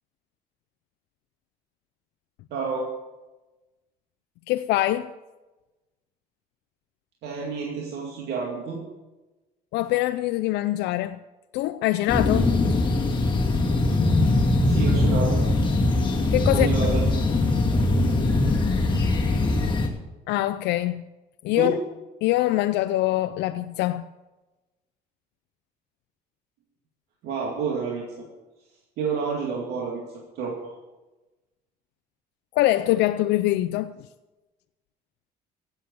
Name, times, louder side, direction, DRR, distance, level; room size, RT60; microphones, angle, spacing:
voice 1, 2.5-2.9 7.2-8.8 14.2-15.4 16.5-17.1 17.7-17.8 21.5-21.7 27.2-28.3 29.0-30.7, right 5 dB, 80° right, 2.3 m, -29 dB
voice 2, 4.5-5.1 9.7-11.2 11.5-12.5 16.3-16.7 20.3-21.0 21.4-21.8 22.2-24.0 32.5-33.9, left 16 dB, 90° left, 0.5 m, -23 dB
sound 1, 12.1-19.9, left 2 dB, 30° left, 2.6 m, -21 dB
15.5 x 8.4 x 6.8 m
cardioid pair, 110°, 17 cm